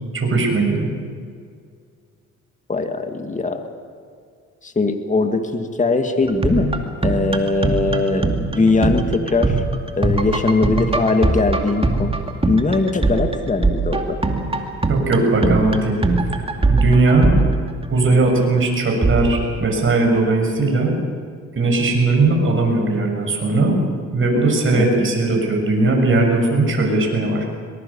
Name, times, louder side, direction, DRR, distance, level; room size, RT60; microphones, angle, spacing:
voice 1, 0.1-0.9 14.9-16.0 16.7-17.3 17.9-20.9 21.6-23.7 24.1-27.4, right 2 dB, 40° right, 1 dB, 7.0 m, -18 dB
voice 2, 2.7-3.7 4.6-6.7 7.0-9.6 10.0-12.1 12.5-14.2 24.8-25.1, left 3 dB, 25° left, 6 dB, 2.1 m, -20 dB
sound 1, 6.2-18.1 19.0-19.6, right 3 dB, 20° right, 2.4 m, -21 dB
23.0 x 20.5 x 7.1 m, 2.2 s
cardioid pair, 90°, 30 cm